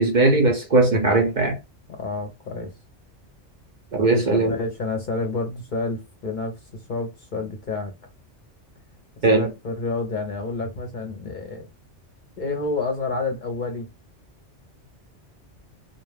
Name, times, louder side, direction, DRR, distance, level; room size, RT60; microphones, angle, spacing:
voice 1, 0.0-1.6 3.9-4.6 9.2-9.5, right 2 dB, 50° right, 0.6 m, -19 dB
voice 2, 1.9-2.7 4.3-6.6 6.9-7.9 9.3-11.7 12.4-13.9, left 3 dB, 50° left, 0.7 m, -29 dB
2.3 x 2.2 x 3.2 m
omnidirectional pair, 1.2 m